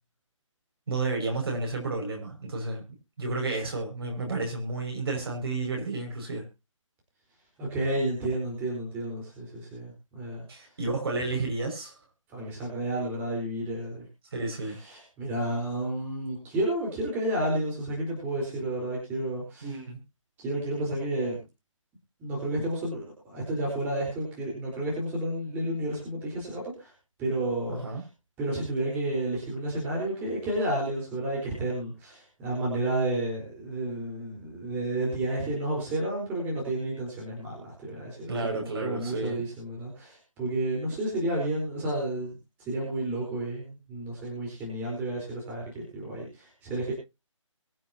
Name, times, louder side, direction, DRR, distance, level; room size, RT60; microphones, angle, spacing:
voice 1, 0.9-2.8 3.2-6.5 10.5-11.9 14.3-14.8 19.6-20.0 27.6-28.0 38.3-39.4, right 3 dB, 45° right, 1 dB, 5.9 m, -31 dB
voice 2, 7.6-10.4 12.3-14.1 14.6-19.8 20.4-21.4 22.2-26.9 27.2-28.0 28.4-46.9, right 1 dB, 10° right, -2 dB, 4.2 m, -31 dB
23.0 x 7.8 x 2.8 m, 0.26 s
figure-of-eight pair, 160°, 17 cm